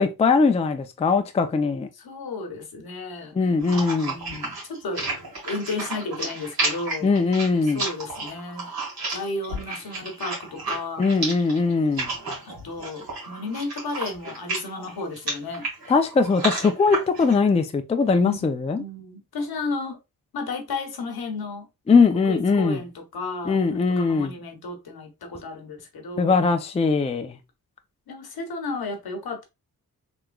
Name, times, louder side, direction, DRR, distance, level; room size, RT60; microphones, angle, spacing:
voice 1, 0.0-1.9 3.3-4.2 7.0-7.8 11.0-12.1 15.9-18.8 21.9-22.8 23.5-24.3 26.2-27.4, left 4 dB, 20° left, 0.3 m, -21 dB
voice 2, 1.9-5.1 5.4-7.2 7.5-8.7 9.1-11.1 12.5-15.7 18.2-18.5 18.8-20.0 20.3-21.7 22.2-26.4 28.1-29.4, left 3 dB, 80° left, 1.0 m, -33 dB
sound 1, 3.6-17.4, right 2 dB, 75° right, 1.7 m, -32 dB
3.5 x 3.0 x 2.2 m
wide cardioid pair, 100°, 36 cm